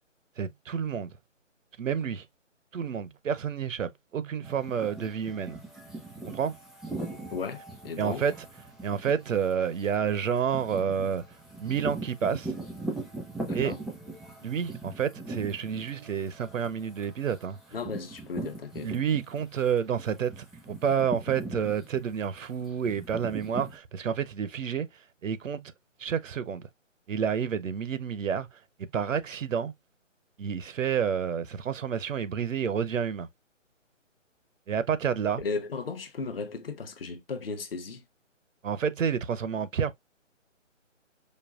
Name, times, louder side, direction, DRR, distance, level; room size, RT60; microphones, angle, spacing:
voice 1, 0.4-1.2 1.8-2.3 2.7-5.6 6.2-6.5 8.0-8.3 8.8-11.2 11.6-12.5 13.5-13.7 14.4-17.6 18.8-25.7 26.0-26.7 27.1-29.7 30.4-33.3 34.7-35.4 38.6-39.9, right 7 dB, 80° right, 0.6 m, -29 dB
sound 1, 4.4-19.6 19.9-23.8, right 2 dB, ahead, 0.3 m, -40 dB
voice 2, 7.3-8.2 13.5-13.8 17.7-18.9 35.4-38.0, left 4 dB, 50° left, 0.7 m, -35 dB
5.1 x 2.2 x 2.3 m
figure-of-eight pair, 155°, 38 cm